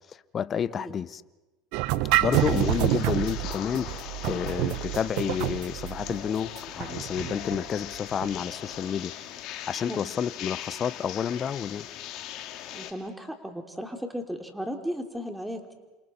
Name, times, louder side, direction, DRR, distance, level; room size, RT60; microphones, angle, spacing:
voice 1, 0.3-1.2 2.1-3.9 4.2-9.1 9.7-11.9, left 8 dB, 35° left, 0.7 m, -30 dB
sound 1, 1.7-8.5, right 15 dB, 70° right, 1.1 m, -28 dB
sound 2, 2.3-12.9, left 11 dB, 60° left, 2.2 m, -40 dB
voice 2, 12.7-15.7, equal, 5° right, 3.0 m, -35 dB
29.5 x 27.0 x 4.3 m
hypercardioid pair, 90°, 0 cm